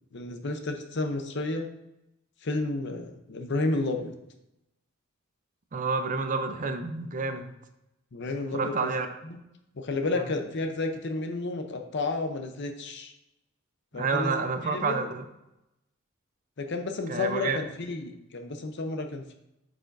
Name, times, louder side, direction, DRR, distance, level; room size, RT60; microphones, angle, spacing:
voice 1, 0.1-1.7 2.4-4.1 8.1-8.9 9.2-9.4 9.8-13.1 13.9-15.1 16.6-19.3, left 2 dB, 60° left, 5 dB, 0.7 m, -31 dB
voice 2, 5.7-7.4 8.5-9.1 10.2-10.3 13.9-15.2 17.1-17.6, right 4 dB, 40° right, 8 dB, 0.5 m, -29 dB
8.5 x 4.9 x 2.6 m, 0.88 s
head